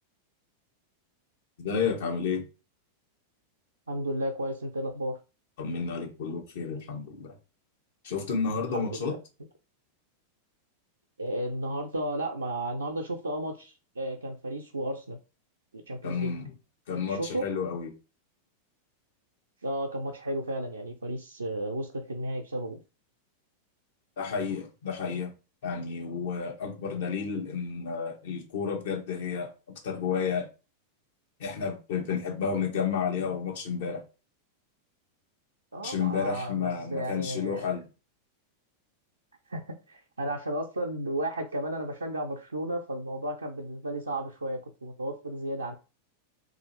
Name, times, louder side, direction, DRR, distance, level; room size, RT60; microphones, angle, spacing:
voice 1, 1.6-2.5 5.6-7.4 8.0-9.1 16.0-16.5 16.9-17.9 24.2-25.3 25.6-30.5 31.4-34.0 35.8-37.9, left 6 dB, 55° left, 1.1 m, -31 dB
voice 2, 3.9-5.2 8.7-9.2 11.2-15.2 15.7-16.3 17.1-17.5 19.6-22.8 35.7-37.7 39.5-39.6 39.9-45.7, right 1 dB, 80° right, 0.5 m, -33 dB
3.0 x 2.7 x 4.2 m
figure-of-eight pair, 90°, 0 cm